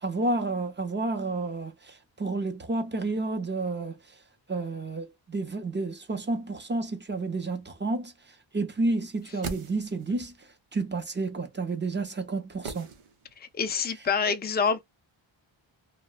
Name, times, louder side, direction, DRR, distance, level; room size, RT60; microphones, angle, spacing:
voice 1, 0.0-4.0 4.5-8.1 8.5-10.3 10.7-12.9, right 3 dB, 25° right, 0.6 m, -30 dB
sound 1, 9.0-10.3 12.6-13.6 13.8-13.9, right 4 dB, 85° right, 0.8 m, -40 dB
voice 2, 13.4-14.8, left 6 dB, 20° left, 0.4 m, -27 dB
2.9 x 2.1 x 2.3 m
wide cardioid pair, 115°, 49 cm